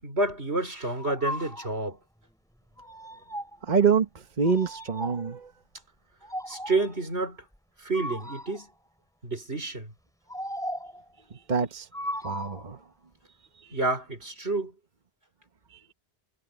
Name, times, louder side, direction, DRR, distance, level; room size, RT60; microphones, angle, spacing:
voice 1, 0.0-2.0 6.5-7.4 7.8-8.7 9.2-9.9 13.7-14.7, right 2 dB, 90° right, 5.4 m, -29 dB
sound 1, 1.0-1.8 2.8-3.7 4.4-5.3 6.2-7.1 7.9-8.7 10.3-11.0 11.9-12.7, equal, 5° left, 3.8 m, -37 dB
voice 2, 3.6-4.1 4.4-5.5 11.5-11.9 12.2-12.8, right 6 dB, 45° right, 1.4 m, -25 dB
omnidirectional pair, 1.1 m